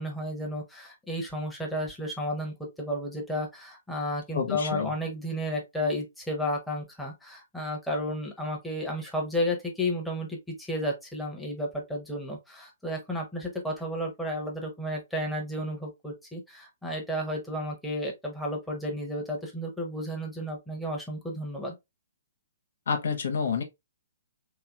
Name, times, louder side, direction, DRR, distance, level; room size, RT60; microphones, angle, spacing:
voice 1, 0.0-21.7, equal, 5° left, 1.0 m, -32 dB
voice 2, 4.3-4.9 22.9-23.6, left 6 dB, 65° left, 0.8 m, -28 dB
3.2 x 2.9 x 2.4 m
figure-of-eight pair, 125°, 0 cm